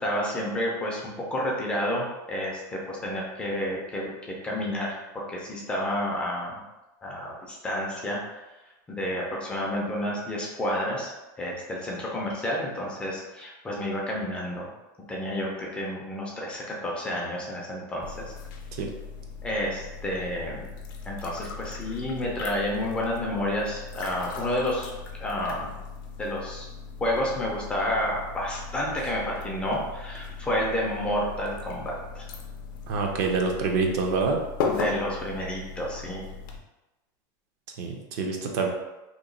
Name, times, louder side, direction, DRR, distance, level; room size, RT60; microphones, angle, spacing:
voice 1, 0.0-6.6 7.0-8.2 8.9-11.1 11.4-14.7 15.1-18.2 19.4-20.7 21.1-24.9 25.2-25.7 26.2-26.7 27.0-32.2 34.7-36.2, left 1 dB, 10° left, -3 dB, 0.4 m, -30 dB
sound 1, 18.0-36.6, left 5 dB, 90° left, 0.5 m, -38 dB
voice 2, 32.9-34.4 37.8-38.7, right 4 dB, 55° right, 2 dB, 0.5 m, -26 dB
2.9 x 2.2 x 3.8 m, 1.0 s
supercardioid pair, 175°, 10 cm